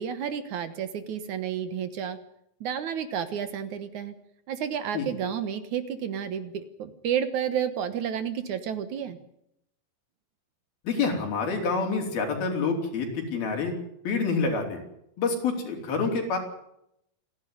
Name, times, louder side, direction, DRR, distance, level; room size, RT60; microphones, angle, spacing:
voice 1, 0.0-2.2 2.6-4.1 4.5-9.2, right 8 dB, 60° right, 12 dB, 2.5 m, -31 dB
voice 2, 10.8-13.7 14.0-14.8 15.2-16.4, left 4 dB, 90° left, 3 dB, 6.0 m, -27 dB
28.0 x 11.5 x 9.5 m, 0.77 s
omnidirectional pair, 4.2 m